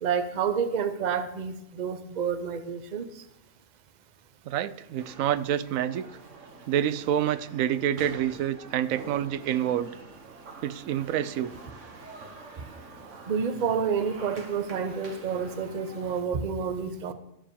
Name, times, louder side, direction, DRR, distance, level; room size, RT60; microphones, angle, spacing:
voice 1, 0.0-3.1 13.3-17.1, right 6 dB, 40° right, 11 dB, 0.7 m, -29 dB
voice 2, 4.5-6.1 6.7-9.9 10.6-11.5, right 10 dB, 90° right, 15 dB, 1.0 m, -27 dB
sound 1, 5.0-16.2, right 3 dB, 65° right, 1.8 m, -46 dB
12.5 x 5.0 x 6.9 m, 0.84 s
omnidirectional pair, 1.4 m